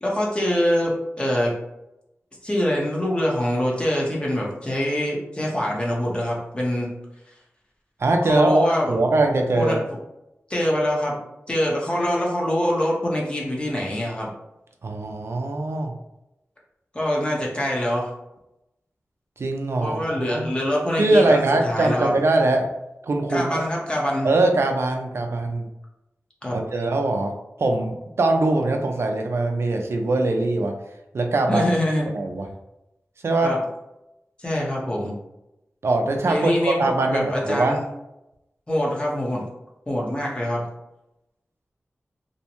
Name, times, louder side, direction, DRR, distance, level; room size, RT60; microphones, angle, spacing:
voice 1, 0.0-1.5 2.4-6.9 8.2-9.0 9.6-9.8 10.5-11.2 11.5-14.3 16.9-18.1 19.8-22.1 23.3-24.3 26.4-26.6 31.5-32.1 33.4-33.6 34.4-35.1 36.2-37.8 38.7-39.4 39.9-40.7, equal, 20° left, -3 dB, 0.7 m, -24 dB
voice 2, 8.0-9.8 14.8-15.9 19.4-20.5 21.0-22.7 23.0-23.6 24.2-25.7 26.5-27.3 27.6-30.7 31.1-31.7 32.1-32.5 33.2-33.5 35.8-37.8, right 2 dB, 65° right, 3 dB, 0.3 m, -22 dB
2.6 x 2.1 x 2.8 m, 0.89 s
wide cardioid pair, 90°, 5 cm